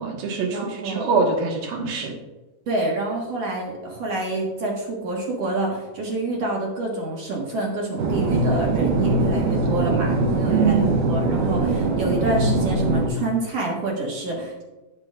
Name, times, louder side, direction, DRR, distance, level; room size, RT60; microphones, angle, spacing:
voice 1, 0.0-2.1 10.5-11.0, right 5 dB, 70° right, 1 dB, 3.2 m, -23 dB
voice 2, 0.5-1.2 2.7-14.6, right 2 dB, 55° right, -2 dB, 2.1 m, -27 dB
sound 1, 8.0-13.1, right 2 dB, 90° right, 3.4 m, -22 dB
11.5 x 9.2 x 2.5 m, 1.1 s
omnidirectional pair, 4.4 m